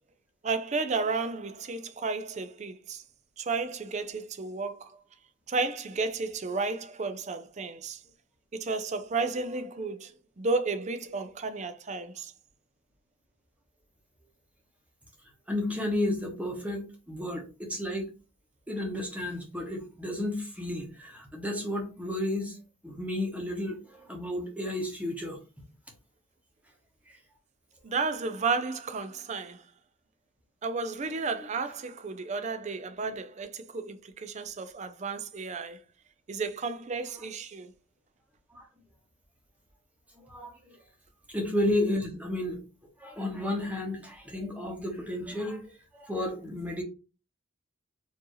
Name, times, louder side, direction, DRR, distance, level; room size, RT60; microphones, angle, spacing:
voice 1, 0.4-3.0 3.4-5.0 5.5-8.0 8.5-12.3 27.8-29.6 30.6-35.8 36.3-37.7, right 4 dB, 35° right, 0.4 m, -32 dB
voice 2, 15.5-18.1 18.7-22.6 22.8-25.4 33.0-33.1 38.5-38.6 40.3-40.7 41.3-42.6 43.0-45.6 45.9-46.8, left 1 dB, 5° right, 1.0 m, -32 dB
4.5 x 2.7 x 3.0 m
head